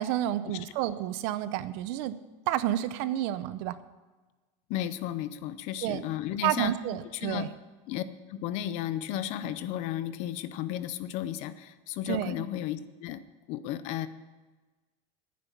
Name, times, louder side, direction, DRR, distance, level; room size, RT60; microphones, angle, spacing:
voice 1, 0.0-2.2 2.5-3.8 5.8-6.0 6.4-7.5 12.1-12.3, right 13 dB, 50° right, 14 dB, 0.7 m, -30 dB
voice 2, 4.7-6.7 7.1-7.5 7.9-8.0 8.3-13.2 13.5-14.1, left 11 dB, 45° left, 13 dB, 0.7 m, -33 dB
11.0 x 9.6 x 8.3 m, 1.2 s
cardioid pair, 175°, 16 cm